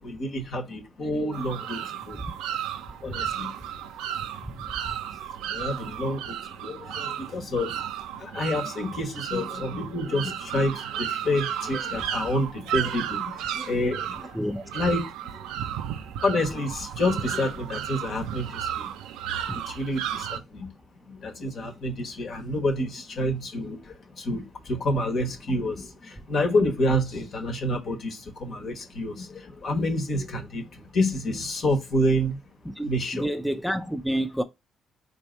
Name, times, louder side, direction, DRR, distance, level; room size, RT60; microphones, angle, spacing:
voice 1, 0.0-2.2 3.0-3.5 5.5-7.7 8.2-14.4 14.7-15.5 16.2-18.9 19.5-20.7 21.1-32.4 32.8-33.3, left 1 dB, 55° left, 1.1 m, -28 dB
sound 1, 1.3-20.4, right 10 dB, 75° right, 0.4 m, -34 dB
voice 2, 14.3-14.6 19.5-19.6 32.8-34.4, equal, ahead, 0.5 m, -28 dB
4.4 x 2.7 x 4.4 m
hypercardioid pair, 45°, 0 cm